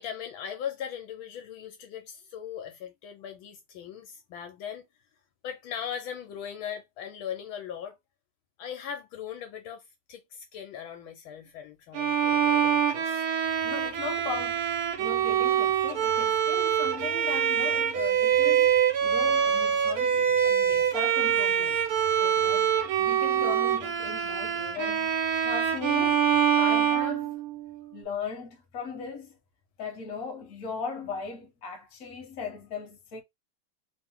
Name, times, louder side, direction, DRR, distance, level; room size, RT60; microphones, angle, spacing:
voice 1, 0.0-4.9 5.4-8.0 8.6-9.8 10.1-13.3 16.7-16.8 20.6-20.9 22.2-22.5, left 8 dB, 75° left, 1.5 m, -39 dB
Bowed string instrument, 11.9-27.8, right 8 dB, 75° right, 0.8 m, -25 dB
voice 2, 13.5-21.9 22.4-26.3 26.6-27.3 27.9-29.4 29.8-33.2, left 4 dB, 50° left, 1.4 m, -38 dB
3.5 x 2.8 x 3.6 m
omnidirectional pair, 2.3 m